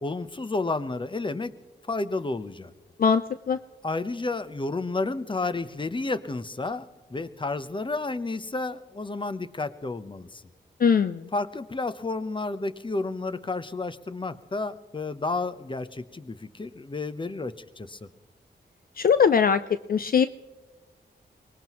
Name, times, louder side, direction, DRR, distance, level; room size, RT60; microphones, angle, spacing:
voice 1, 0.0-1.5 1.9-2.7 3.8-10.4 11.3-18.1, left 3 dB, 25° left, 13 dB, 0.9 m, -31 dB
voice 2, 10.8-11.2 19.0-19.6 19.9-20.3, left 6 dB, 50° left, 12 dB, 0.4 m, -20 dB
24.0 x 19.0 x 3.1 m, 1.2 s
cardioid pair, 55°, 19 cm